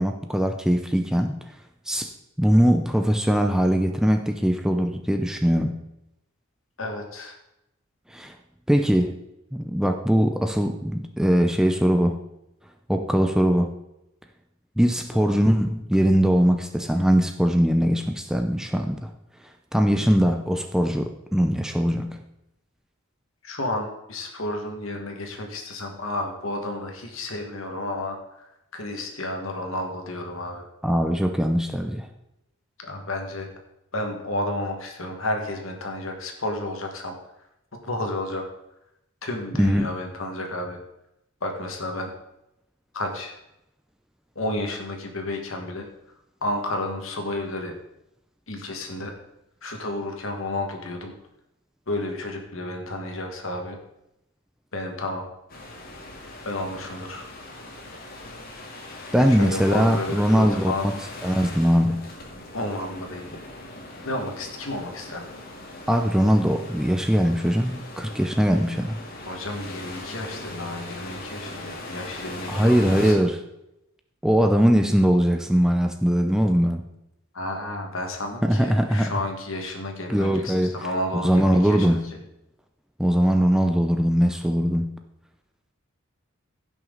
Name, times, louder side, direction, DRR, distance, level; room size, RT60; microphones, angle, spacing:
voice 1, 0.0-1.4 1.9-2.1 2.4-5.7 8.1-8.3 8.7-9.1 9.5-12.2 12.9-13.7 14.8-19.1 19.7-22.2 30.8-32.1 39.6-39.9 59.1-60.9 61.2-62.1 65.9-69.0 72.5-73.4 74.2-76.9 78.4-79.1 80.1-80.7 81.1-82.0 83.0-85.0, equal, 5° right, 5 dB, 0.5 m, -21 dB
voice 2, 6.8-7.4 15.1-15.4 23.4-28.5 28.7-30.7 32.8-33.5 33.9-37.2 37.8-38.5 39.2-40.8 41.4-42.1 42.9-43.4 44.3-45.9 46.4-47.7 48.5-49.1 49.6-51.2 51.9-53.8 54.7-55.2 56.4-57.3 59.2-60.9 62.5-63.3 64.0-65.3 69.2-73.2 77.3-82.0, left 1 dB, 70° left, 3 dB, 1.8 m, -31 dB
sound 1, 55.5-73.1, left 2 dB, 45° left, 1.8 m, -40 dB
15.5 x 6.2 x 3.9 m, 0.86 s
head